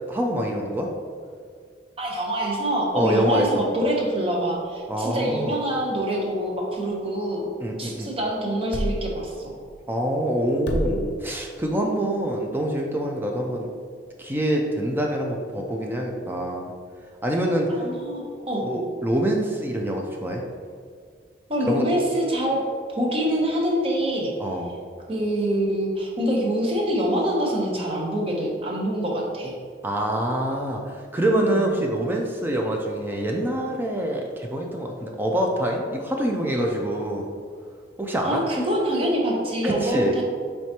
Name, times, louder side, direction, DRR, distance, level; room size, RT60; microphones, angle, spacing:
voice 1, 0.1-0.9 2.9-3.7 4.9-5.6 7.6-8.1 9.9-13.7 14.2-16.7 17.2-17.9 18.7-20.4 21.7-21.8 24.4-24.7 29.8-37.3 38.0-38.4 39.6-40.2, right 1 dB, 10° right, 0 dB, 0.3 m, -25 dB
voice 2, 2.0-7.5 7.8-9.6 17.7-18.6 21.5-22.6 22.9-24.3 25.1-29.5 31.3-31.7 38.2-40.2, right 1 dB, 35° right, -2 dB, 0.8 m, -25 dB
sound 1, 6.3-15.7, equal, 70° left, 0.5 m, -38 dB
4.6 x 3.3 x 2.8 m, 2.1 s
head